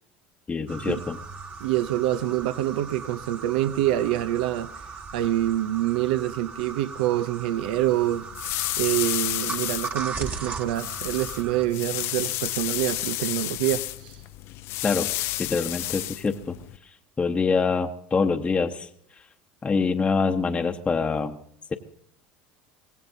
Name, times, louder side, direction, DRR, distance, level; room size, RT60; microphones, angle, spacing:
voice 1, 0.5-1.2 14.8-15.1 15.4-16.6 16.8-18.9 19.6-21.4, left 4 dB, 25° left, 0.9 m, -25 dB
sound 1, 0.7-11.7, right 4 dB, 35° right, 1.8 m, -38 dB
voice 2, 1.6-4.7 5.1-8.3 8.8-14.2, right 14 dB, 85° right, 0.6 m, -26 dB
sound 2, 7.6-16.8, left 16 dB, 60° left, 0.6 m, -32 dB
24.0 x 17.5 x 2.7 m
supercardioid pair, 95°, 5 cm